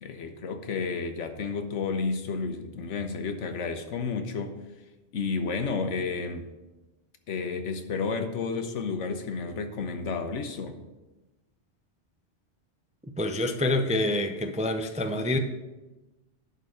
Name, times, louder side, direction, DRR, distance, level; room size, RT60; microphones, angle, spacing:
voice 1, 0.0-4.6 5.1-6.4 7.3-10.8, left 4 dB, 85° left, 7 dB, 1.2 m, -31 dB
voice 2, 13.2-15.4, left 1 dB, 10° right, 6 dB, 0.3 m, -27 dB
11.0 x 4.1 x 6.5 m, 1.1 s
omnidirectional pair, 1.2 m